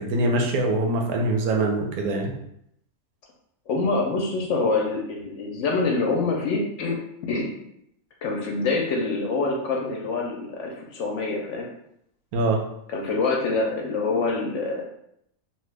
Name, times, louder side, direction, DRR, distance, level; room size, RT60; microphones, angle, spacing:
voice 1, 0.0-2.3 12.3-12.6, right 2 dB, 85° right, 2 dB, 1.1 m, -23 dB
voice 2, 3.7-7.0 7.2-7.5 8.2-11.7 12.9-14.8, left 3 dB, 70° left, 0 dB, 0.8 m, -25 dB
2.9 x 2.2 x 3.2 m, 0.75 s
omnidirectional pair, 1.5 m